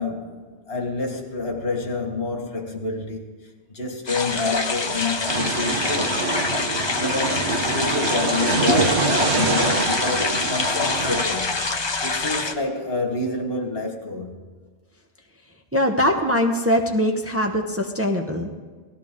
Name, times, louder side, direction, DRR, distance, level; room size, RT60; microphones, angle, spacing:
voice 1, 0.0-3.5 3.7-6.2 7.0-11.6 12.0-14.4, left 3 dB, 65° left, 1.9 m, -28 dB
sound 1, 4.1-12.5, left 3 dB, 30° left, 0.7 m, -25 dB
sound 2, 5.3-11.2, right 3 dB, 85° right, 1.4 m, -25 dB
voice 2, 15.7-18.5, left 1 dB, 15° right, 0.9 m, -22 dB
17.5 x 14.0 x 3.7 m
omnidirectional pair, 1.1 m